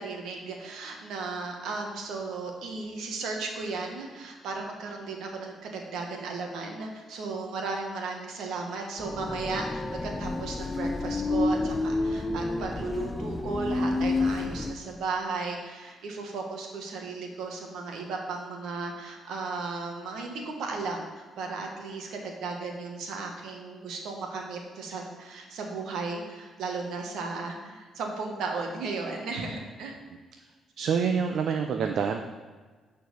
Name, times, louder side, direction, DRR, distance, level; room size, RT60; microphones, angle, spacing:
voice 1, 0.0-30.0, right 4 dB, 80° right, 2 dB, 1.6 m, -35 dB
sound 1, 9.0-14.7, left 2 dB, 20° left, 0.7 m, -29 dB
voice 2, 30.8-32.2, right 6 dB, 65° right, 4 dB, 0.6 m, -26 dB
9.1 x 4.6 x 6.9 m, 1.4 s
cardioid pair, 90°, 0 cm